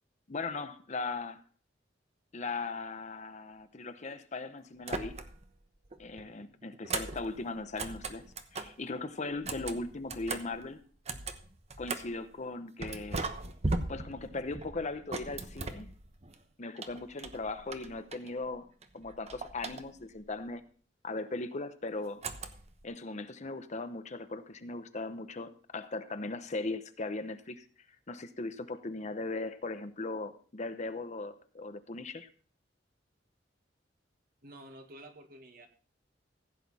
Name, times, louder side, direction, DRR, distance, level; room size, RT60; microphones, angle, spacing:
voice 1, 0.3-1.4 2.3-5.2 6.0-8.2 8.5-10.8 11.8-13.2 13.9-15.9 16.6-18.7 18.9-20.6 21.0-22.2 22.8-27.6 28.1-32.3, left 3 dB, 40° left, 10 dB, 0.8 m, -38 dB
sound 1, 4.8-5.5 5.8-8.8 9.3-12.2 12.8-16.4 16.8-18.5 18.8-20.2 22.2-22.8, right 3 dB, 35° right, 1.0 m, -39 dB
voice 2, 34.4-35.7, right 1 dB, 55° right, 5 dB, 1.7 m, -50 dB
15.5 x 8.3 x 4.1 m, 0.42 s
head